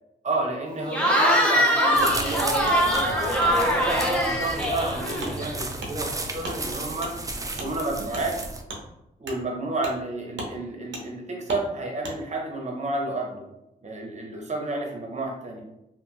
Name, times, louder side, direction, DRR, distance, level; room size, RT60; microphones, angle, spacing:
voice 1, 0.2-2.6 3.6-7.1 7.4-8.4 9.2-13.4 13.8-15.6, right 2 dB, 35° right, 0 dB, 0.9 m, -31 dB
Cheering / Crowd, 0.9-5.5, equal, 5° left, 0.8 m, -22 dB
sound 1, 1.9-8.6, right 2 dB, 15° right, 0.4 m, -34 dB
Wood, 2.0-2.2 2.6-2.8 3.4-3.5 4.0-4.1 4.6-4.7 5.2-5.3 5.8-5.9 6.4-6.6 7.0-7.1 7.6-7.7 8.1-8.2 8.7-8.8 9.2-9.4 9.8-10.0 10.3-10.5 10.9-11.0 11.5-11.6 12.0-12.2, right 1 dB, 70° right, 0.7 m, -35 dB
2.6 x 2.6 x 2.4 m, 0.88 s
supercardioid pair, 55°, 19 cm